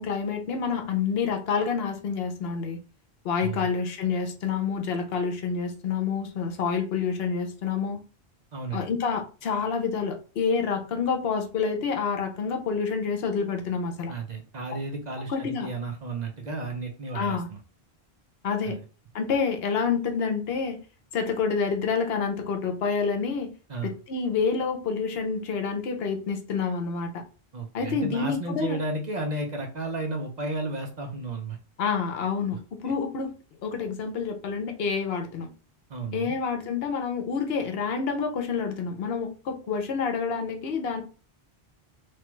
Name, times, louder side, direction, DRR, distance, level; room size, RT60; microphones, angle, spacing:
voice 1, 0.0-2.8 3.2-8.0 8.7-14.1 15.3-15.7 17.1-17.5 18.4-18.8 19.1-20.8 21.1-23.5 23.8-27.2 27.7-28.8 31.8-33.3 33.6-35.5 36.1-41.0, left 5 dB, 70° left, 4 dB, 0.8 m, -28 dB
voice 2, 8.5-8.9 14.1-17.6 18.6-18.8 23.7-23.9 27.5-31.6 32.5-32.6 35.9-36.3, right 3 dB, 50° right, 2 dB, 0.6 m, -33 dB
3.1 x 2.2 x 3.0 m, 0.35 s
omnidirectional pair, 1.1 m